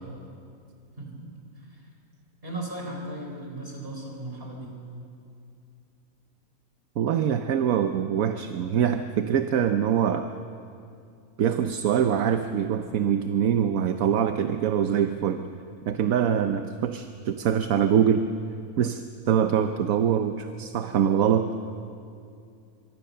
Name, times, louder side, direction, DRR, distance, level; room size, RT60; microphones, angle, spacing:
voice 1, 1.0-1.3 2.4-4.7, right 1 dB, 40° right, 1 dB, 4.7 m, -36 dB
voice 2, 7.0-10.3 11.4-15.5 15.9-18.3 18.8-21.5, right 8 dB, 75° right, 8 dB, 1.2 m, -24 dB
24.5 x 23.5 x 6.7 m, 2.5 s
omnidirectional pair, 1.5 m